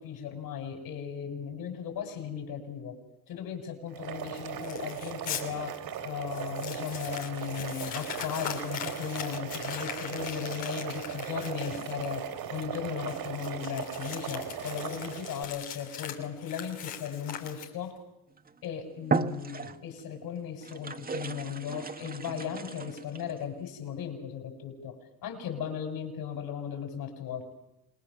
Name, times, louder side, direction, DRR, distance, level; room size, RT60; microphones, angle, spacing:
voice 1, 0.0-2.9 3.3-5.7 6.0-12.2 12.5-17.9 18.6-25.0 25.2-27.5, left 8 dB, 65° left, 5 dB, 7.2 m, -37 dB
Boiling, 3.9-15.4, right 9 dB, 65° right, 3.6 m, -38 dB
Crumpling crinkling, 4.6-5.4 5.9-6.0 6.3-18.0, left 9 dB, 85° left, 3.2 m, -41 dB
sound 1, 18.4-18.6 19.0-20.0 20.6-23.4, right 4 dB, 25° right, 1.5 m, -34 dB
28.0 x 20.5 x 7.3 m, 0.85 s
hypercardioid pair, 65°, 39 cm